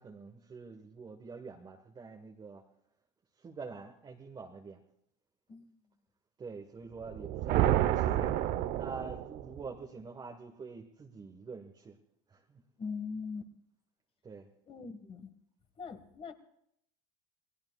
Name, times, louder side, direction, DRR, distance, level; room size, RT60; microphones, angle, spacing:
voice 1, 0.0-2.6 3.4-4.8 6.4-12.0 12.3-12.6 14.2-14.5, right 4 dB, 20° right, 2 dB, 1.3 m, -46 dB
sound 1, 7.0-9.7, right 13 dB, 50° right, 0.8 m, -29 dB
voice 2, 12.8-13.4 14.7-15.3 15.8-16.3, left 5 dB, 30° left, 9 dB, 1.6 m, -41 dB
28.0 x 19.5 x 2.4 m, 0.73 s
supercardioid pair, 110°, 20 cm